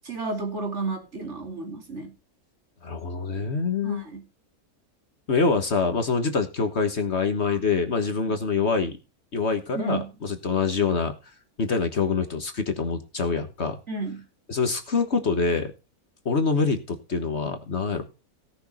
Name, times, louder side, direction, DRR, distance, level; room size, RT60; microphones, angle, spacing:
voice 1, 0.0-2.1 3.8-4.2 9.7-10.1 13.9-14.2, right 3 dB, 50° right, 3.0 m, -32 dB
voice 2, 2.8-4.1 5.3-9.0 9.3-11.1 11.6-13.8 14.5-15.7 16.2-18.0, left 4 dB, 50° left, 1.6 m, -25 dB
17.5 x 6.5 x 4.2 m
omnidirectional pair, 1.6 m